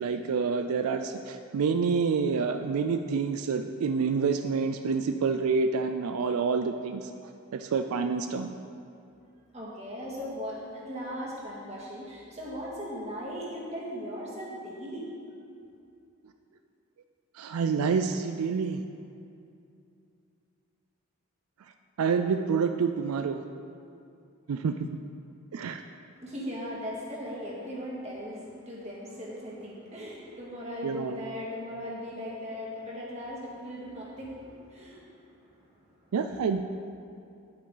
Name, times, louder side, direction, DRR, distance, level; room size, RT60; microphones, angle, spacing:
voice 1, 0.0-7.1 7.5-8.5 17.4-18.8 22.0-23.4 24.5-24.9 25.5-25.8 30.8-31.2 36.1-36.6, right 5 dB, 85° right, 7 dB, 0.4 m, -28 dB
voice 2, 9.5-15.1 26.1-35.7, equal, 30° right, -5 dB, 2.0 m, -38 dB
9.9 x 8.5 x 3.9 m, 2.6 s
head